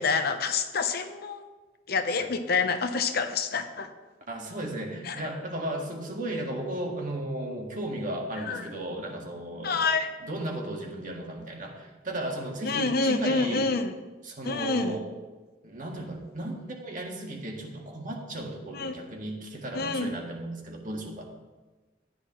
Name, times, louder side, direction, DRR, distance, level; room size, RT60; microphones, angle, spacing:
voice 1, 0.0-1.4 1.9-3.9 5.1-5.2 8.5-8.6 9.6-10.1 12.6-13.9 14.4-15.0 18.7-18.9 19.7-20.1, left 4 dB, 55° left, 8 dB, 0.8 m, -27 dB
voice 2, 4.3-9.9 10.2-13.7 14.2-15.1 15.6-21.3, right 1 dB, 45° right, 1 dB, 1.8 m, -35 dB
14.5 x 10.5 x 3.1 m, 1.2 s
head